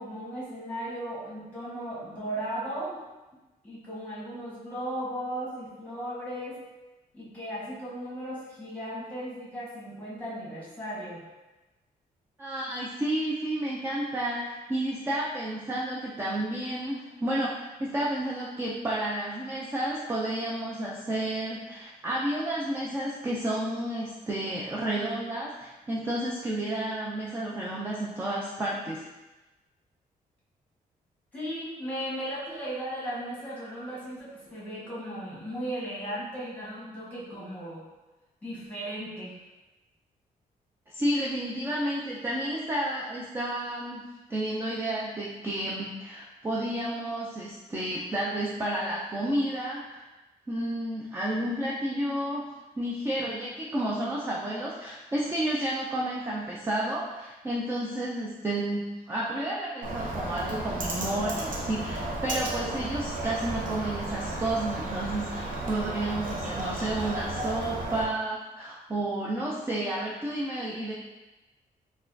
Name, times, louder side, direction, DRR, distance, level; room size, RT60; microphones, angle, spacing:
voice 1, 0.0-3.0 3.6-6.6 7.1-11.2 31.3-37.8 38.4-39.3, right 1 dB, 10° left, -8 dB, 1.3 m, -36 dB
voice 2, 12.4-29.0 40.9-50.1 50.5-52.4 52.8-70.9, right 1 dB, 15° right, -5 dB, 0.4 m, -31 dB
Bird, 59.8-68.0, right 2 dB, 60° right, 0.7 m, -33 dB
4.0 x 2.3 x 2.6 m, 1.1 s
cardioid pair, 135°, 15 cm